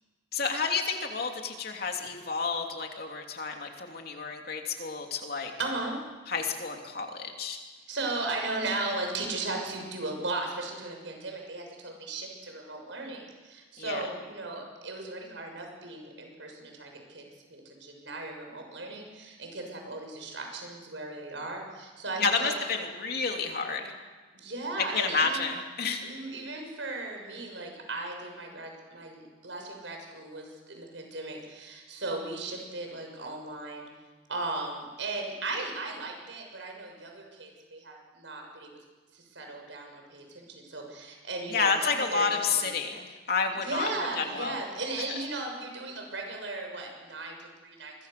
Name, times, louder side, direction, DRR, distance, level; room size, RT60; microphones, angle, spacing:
voice 1, 0.3-5.5 6.3-7.6 13.8-14.0 22.2-23.9 24.8-26.0 41.5-43.9 44.2-44.6 45.1-45.2, left 5 dB, 55° left, 3 dB, 3.0 m, -30 dB
voice 2, 5.6-6.0 7.9-17.2 17.5-22.6 24.3-25.5 26.0-33.9 34.3-38.7 39.1-42.3 42.5-42.7 43.6-47.9, right 2 dB, 75° right, 2 dB, 6.7 m, -36 dB
26.5 x 23.0 x 6.8 m, 1.3 s
head